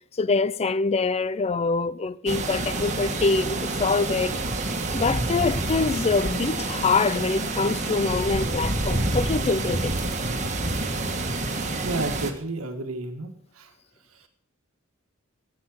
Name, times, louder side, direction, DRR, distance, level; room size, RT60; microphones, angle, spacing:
voice 1, 0.2-4.4 4.9-9.9, left 4 dB, 30° left, 0.4 m, -25 dB
sound 1, 2.3-12.3, right 2 dB, 35° right, 1.6 m, -28 dB
voice 2, 11.8-13.7 14.1-14.3, right 2 dB, 80° right, 1.6 m, -32 dB
14.5 x 8.5 x 6.2 m
head